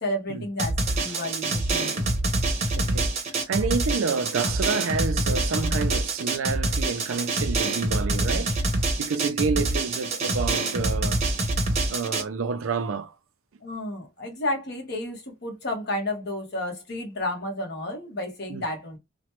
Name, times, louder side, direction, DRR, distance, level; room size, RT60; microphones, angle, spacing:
voice 1, 0.0-2.1 13.6-19.0, left 1 dB, 55° left, 1.1 m, -31 dB
Drum, 0.6-12.2, right 2 dB, 35° right, 0.7 m, -26 dB
voice 2, 2.8-8.7 9.0-11.2 11.7-13.1 18.5-18.7, right 5 dB, 85° right, 0.4 m, -29 dB
3.0 x 2.1 x 3.0 m
head